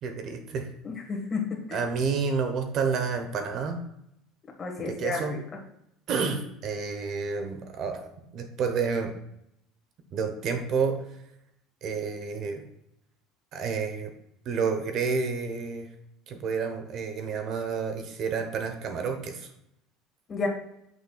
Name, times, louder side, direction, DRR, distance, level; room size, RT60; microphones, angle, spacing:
voice 1, 0.0-0.7 1.7-3.8 4.8-5.4 6.1-9.1 10.1-11.0 11.8-12.6 13.5-14.1 14.4-15.9 16.3-19.5, right 5 dB, 45° right, 7 dB, 0.9 m, -30 dB
voice 2, 0.8-1.8 4.6-5.4 20.3-20.5, left 4 dB, 25° left, 1 dB, 1.5 m, -31 dB
8.6 x 6.4 x 2.3 m, 0.78 s
cardioid pair, 145°, 0 cm